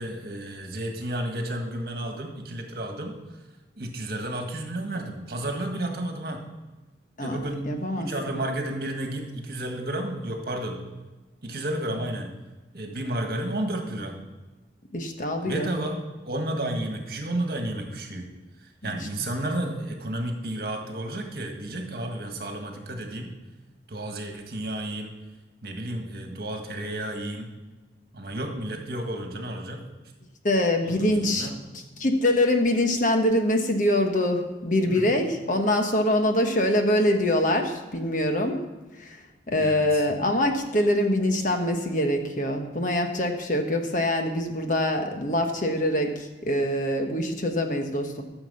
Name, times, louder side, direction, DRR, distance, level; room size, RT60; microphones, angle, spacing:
voice 1, 0.0-3.1 3.8-6.4 7.2-7.7 8.0-10.8 11.4-12.3 12.7-14.2 15.4-16.0 16.3-18.3 18.8-23.3 23.9-25.1 25.6-27.5 28.1-29.8 30.8-31.5 34.9-35.0 39.6-40.0, right 1 dB, 55° right, 3 dB, 1.7 m, -32 dB
voice 2, 7.7-8.1 14.9-15.7 18.8-18.9 30.4-31.5 32.0-38.6 39.0-39.2 39.5-48.2, left 1 dB, 45° left, 4 dB, 1.2 m, -24 dB
13.5 x 7.0 x 5.6 m, 1.2 s
head